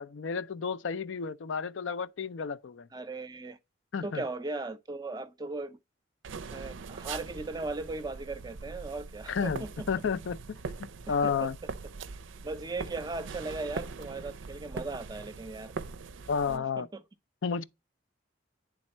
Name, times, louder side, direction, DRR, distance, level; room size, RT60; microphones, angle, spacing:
voice 1, 0.0-2.9 3.9-4.2 9.3-10.4 11.1-11.6 16.3-16.9 17.4-17.6, left 6 dB, 80° left, 0.4 m, -31 dB
voice 2, 2.9-3.6 4.0-5.8 6.5-9.9 11.2-11.3 12.4-15.7 16.5-17.0, right 3 dB, 20° right, 0.5 m, -37 dB
sound 1, 6.2-16.6, right 4 dB, 85° right, 0.5 m, -42 dB
9.7 x 3.5 x 4.2 m
head